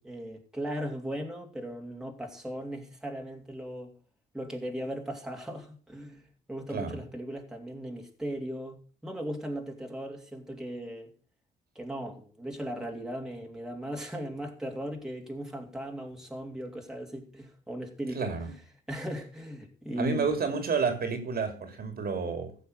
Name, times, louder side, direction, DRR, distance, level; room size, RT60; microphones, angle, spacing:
voice 1, 0.0-3.9 4.3-11.1 11.7-18.6 18.9-20.4, equal, 5° right, 3.0 m, -38 dB
voice 2, 18.1-18.5 20.0-22.6, right 5 dB, 50° right, 2.9 m, -30 dB
15.0 x 6.6 x 6.5 m
cardioid pair, 90°, 20 cm